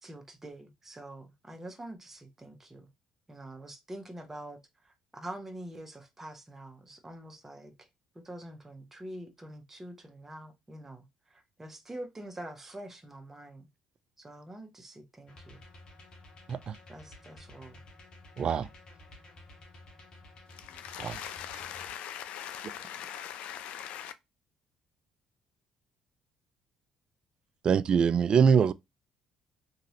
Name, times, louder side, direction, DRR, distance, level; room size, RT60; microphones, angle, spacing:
voice 1, 0.0-2.9 3.3-7.9 8.1-13.7 14.2-15.6 16.9-17.8 21.9-22.1, right 1 dB, 15° right, 0.9 m, -45 dB
sound 1, 15.3-21.9, left 2 dB, 40° left, 1.1 m, -53 dB
voice 2, 18.4-18.7 21.0-21.2 27.6-28.7, right 6 dB, 45° right, 0.3 m, -24 dB
voice 3, 20.5-24.1, left 10 dB, 75° left, 0.4 m, -41 dB
3.0 x 2.7 x 2.7 m
cardioid pair, 90°, 2 cm